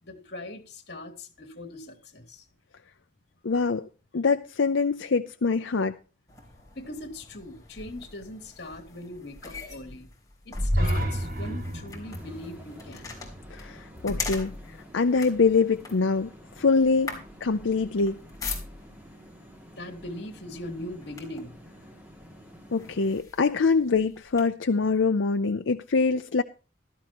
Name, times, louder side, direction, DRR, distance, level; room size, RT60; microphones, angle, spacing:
voice 1, 0.0-2.5 6.7-10.1 10.4-13.1 19.8-21.5, left 1 dB, 55° left, 2.9 m, -40 dB
voice 2, 3.4-3.8 4.1-6.0 13.5-16.3 16.6-18.2 22.7-26.4, left 4 dB, 90° left, 0.6 m, -24 dB
sound 1, 6.3-19.1 20.0-20.2 20.6-21.6 22.2-22.3 22.8-24.4, left 2 dB, 20° left, 4.2 m, -37 dB
sound 2, 10.7-14.5, right 1 dB, 50° right, 2.3 m, -32 dB
sound 3, 12.0-23.2, equal, 10° right, 2.5 m, -50 dB
16.0 x 13.5 x 3.0 m
head